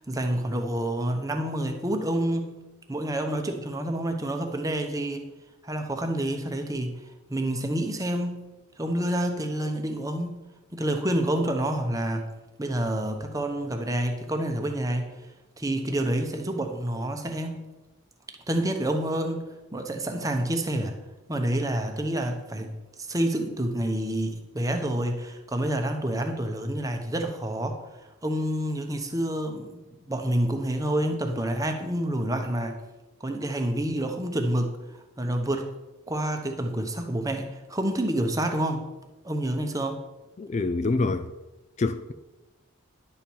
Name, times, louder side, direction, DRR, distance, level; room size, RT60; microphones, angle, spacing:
voice 1, 0.0-2.5 2.9-5.3 5.6-10.4 10.7-12.3 12.6-15.3 15.6-17.6 18.5-21.0 21.3-27.8 28.2-32.8 33.2-35.7 36.1-38.9 39.2-40.0, right 1 dB, 15° right, 0.9 m, -28 dB
voice 2, 40.4-41.3 41.8-42.1, left 3 dB, 35° left, 0.3 m, -26 dB
10.5 x 4.5 x 7.0 m
head